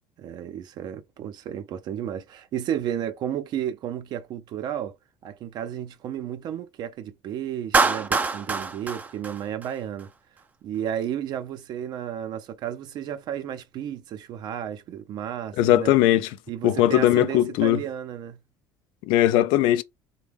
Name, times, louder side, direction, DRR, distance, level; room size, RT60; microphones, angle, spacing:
voice 1, 0.2-4.9 5.2-10.1 10.6-15.9 16.5-18.4, right 10 dB, 60° right, 0.6 m, -32 dB
Clapping, 7.7-10.0, right 4 dB, 20° right, 0.4 m, -25 dB
voice 2, 15.6-16.3 16.6-17.8 19.1-19.8, left 13 dB, 75° left, 0.4 m, -19 dB
3.4 x 2.2 x 3.5 m
supercardioid pair, 95°, 8 cm